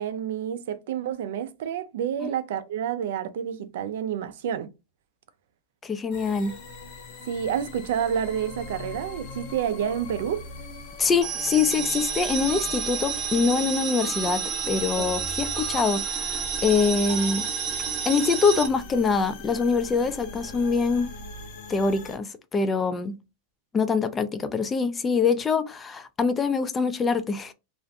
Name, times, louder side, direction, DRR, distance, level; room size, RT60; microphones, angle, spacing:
voice 1, 0.0-4.7 7.3-10.5 15.0-15.1, right 9 dB, 70° right, 0.3 m, -29 dB
voice 2, 5.8-6.5 11.0-17.4 18.1-21.1 21.7-23.1 23.7-27.5, left 5 dB, 20° left, 0.3 m, -24 dB
sound 1, 6.1-22.2, left 2 dB, 55° left, 0.7 m, -41 dB
sound 2, 11.2-18.7, right 7 dB, 35° right, 0.6 m, -30 dB
2.4 x 2.1 x 2.6 m
hypercardioid pair, 120°, 0 cm